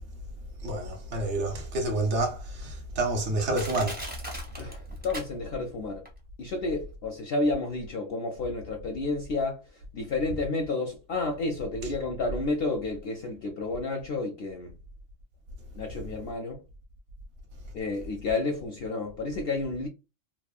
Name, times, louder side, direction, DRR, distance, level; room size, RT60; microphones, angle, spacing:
voice 1, 0.6-4.0, right 2 dB, 60° right, 1.0 m, -29 dB
Crushing, 3.5-5.7 6.1-6.2, equal, 15° right, 0.4 m, -39 dB
voice 2, 4.6-6.0 6.4-9.6 9.9-14.7 15.7-16.6 17.7-19.9, left 3 dB, 65° left, 0.6 m, -31 dB
3.0 x 2.0 x 2.3 m
omnidirectional pair, 1.4 m